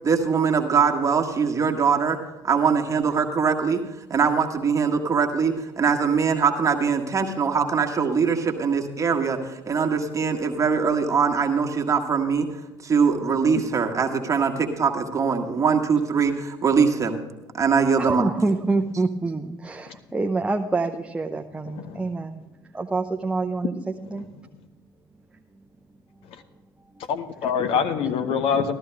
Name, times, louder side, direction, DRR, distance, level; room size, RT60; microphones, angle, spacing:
voice 1, 0.0-2.2 2.4-3.8 4.1-12.5 12.8-17.2 17.5-18.3, right 5 dB, 25° right, 2 dB, 1.6 m, -22 dB
voice 2, 18.0-22.4 22.7-23.7 24.1-24.3 26.9-27.0, right 3 dB, 10° right, 3 dB, 0.7 m, -26 dB
voice 3, 21.7-22.1 24.1-24.2 27.1-28.7, left 6 dB, 50° left, 7 dB, 1.0 m, -25 dB
13.5 x 13.5 x 3.5 m, 1.1 s
figure-of-eight pair, 60°, 12 cm